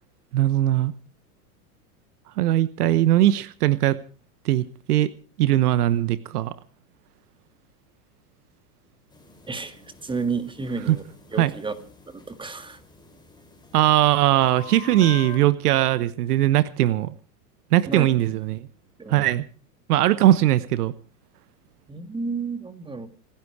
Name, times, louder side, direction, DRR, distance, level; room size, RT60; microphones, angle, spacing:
voice 1, 0.3-0.9 2.4-4.0 4.4-5.1 5.4-6.5 10.9-11.0 11.4-11.5 13.7-17.1 17.7-18.7 19.1-19.4 19.9-20.9, right 14 dB, 75° right, 16 dB, 1.1 m, -20 dB
sound 1, 9.1-15.4, left 8 dB, 10° left, 4.1 m, -44 dB
voice 2, 9.5-11.0 11.3-11.7 12.1-12.8 17.9-18.1 19.0-19.3 21.9-23.1, right 4 dB, 10° right, 10 dB, 2.0 m, -31 dB
27.0 x 10.5 x 4.8 m, 0.39 s
hypercardioid pair, 120°, 46 cm